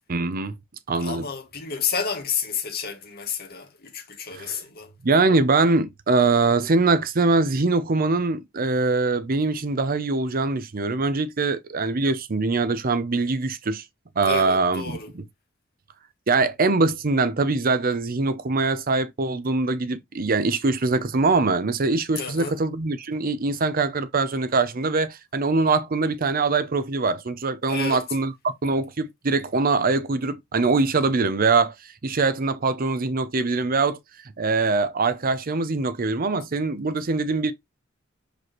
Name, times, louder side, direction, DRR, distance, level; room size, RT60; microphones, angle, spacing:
voice 1, 0.1-0.6 0.9-1.3 4.3-4.6 5.0-13.8 14.2-15.0 16.3-28.3 28.6-31.7 32.0-34.0 34.4-37.5, right 3 dB, 45° right, 0.6 m, -23 dB
voice 2, 1.0-4.9 14.2-15.1 22.2-22.6 27.7-28.0, left 6 dB, 50° left, 2.1 m, -30 dB
6.2 x 5.0 x 3.0 m
head